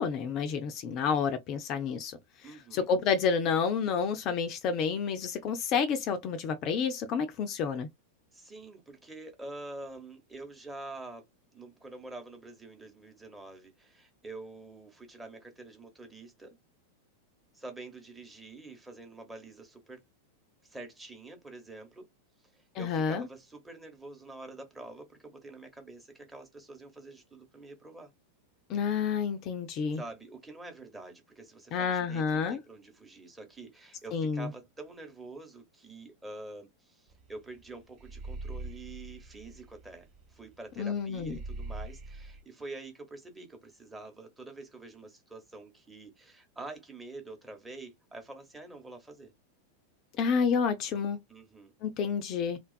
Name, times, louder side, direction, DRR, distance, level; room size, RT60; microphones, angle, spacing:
voice 1, 0.0-2.2 2.7-7.9 22.7-23.3 28.7-30.0 31.7-32.6 34.1-34.5 40.8-41.4 50.2-51.2 51.8-52.6, left 6 dB, 35° left, 0.4 m, -29 dB
voice 2, 2.4-2.9 8.3-11.3 11.5-16.6 17.5-20.0 20.6-22.1 22.5-28.1 29.9-49.3 51.3-51.7, right 2 dB, 10° right, 0.8 m, -46 dB
sound 1, 37.1-37.3 37.6-40.4 40.7-40.8 41.2-42.4, right 2 dB, 35° right, 0.4 m, -42 dB
2.4 x 2.3 x 2.2 m
figure-of-eight pair, 90°, 0 cm